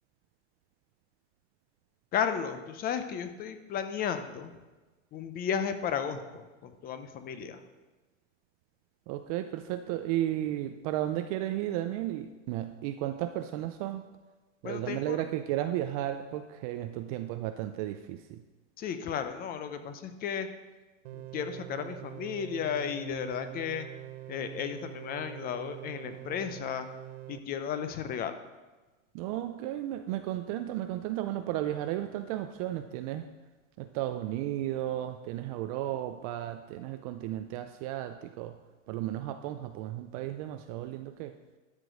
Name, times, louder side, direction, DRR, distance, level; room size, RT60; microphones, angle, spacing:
voice 1, 2.1-4.5 5.1-7.6 14.6-15.2 18.8-20.5 21.1-23.9 24.3-26.9 27.3-28.3, left 7 dB, 25° left, 10 dB, 0.6 m, -34 dB
voice 2, 9.1-14.1 14.6-18.4 29.1-33.3 33.8-38.6 38.9-41.4, right 13 dB, 30° right, 8 dB, 0.4 m, -34 dB
sound 1, 21.0-27.4, right 15 dB, 55° right, 0.7 m, -44 dB
11.5 x 5.1 x 6.2 m, 1.2 s
hypercardioid pair, 130°, 39 cm